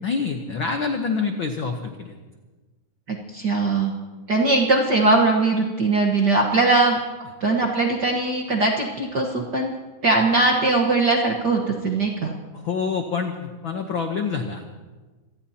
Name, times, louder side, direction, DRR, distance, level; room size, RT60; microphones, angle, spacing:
voice 1, 0.0-2.1 12.5-14.6, left 5 dB, 70° left, 4 dB, 1.2 m, -26 dB
voice 2, 3.1-3.9 4.3-7.0 7.4-9.7 10.0-12.3, right 3 dB, 50° right, 0 dB, 1.3 m, -20 dB
26.5 x 18.5 x 2.9 m, 1.3 s
omnidirectional pair, 3.6 m